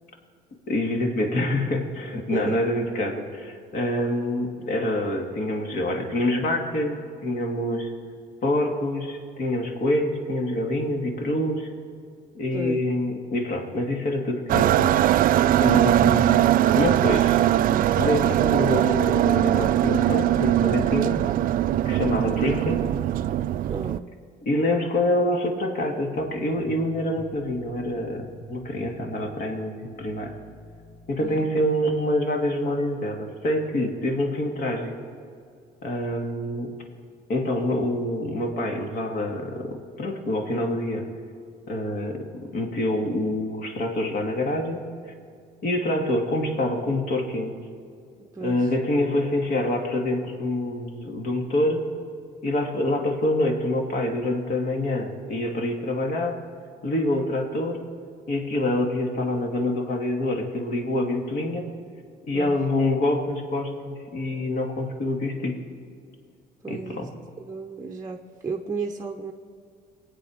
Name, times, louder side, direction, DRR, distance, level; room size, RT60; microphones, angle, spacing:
voice 1, 0.7-7.9 8.4-11.7 12.3-15.0 15.6-16.4 16.8-17.4 18.0-21.2 21.8-22.9 24.4-30.3 31.1-34.9 35.8-36.7 37.3-41.1 41.7-44.9 45.6-47.6 48.4-51.9 52.4-56.4 56.8-57.8 58.3-61.7 62.3-65.6 66.7-67.1, left 1 dB, 55° left, 2 dB, 2.2 m, -26 dB
voice 2, 2.1-2.7 12.5-12.8 23.7-24.1 31.2-31.5 48.3-48.7 62.3-62.6 66.6-67.1 67.4-69.3, right 4 dB, 20° right, 2 dB, 0.8 m, -33 dB
sound 1, 14.5-24.0, right 12 dB, 55° right, 0.4 m, -21 dB
sound 2, 26.1-31.5, equal, 80° left, 2.2 m, -46 dB
22.5 x 8.8 x 4.9 m, 2.3 s
cardioid pair, 110°, 17 cm